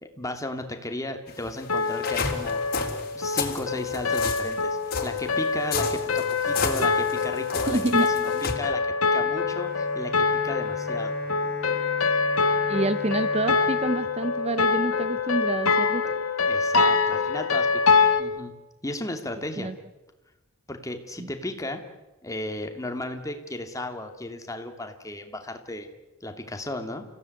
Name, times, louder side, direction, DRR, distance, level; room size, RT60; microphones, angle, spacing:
voice 1, 0.0-2.6 3.1-11.2 16.5-18.5 18.8-19.7 20.7-21.8 22.2-25.9 26.2-27.0, left 1 dB, 15° left, 5 dB, 2.7 m, -35 dB
sound 1, 1.3-8.6, left 5 dB, 45° left, 3.6 m, -32 dB
sound 2, 1.7-18.2, left 4 dB, 85° left, 2.1 m, -25 dB
voice 2, 7.7-8.1 8.3-8.4 12.7-16.0 19.6-19.7 21.2-21.3, right 2 dB, 30° right, 12 dB, 0.9 m, -27 dB
Bowed string instrument, 9.1-15.1, equal, 50° right, 5.2 m, -41 dB
29.5 x 16.5 x 9.5 m, 1.0 s
head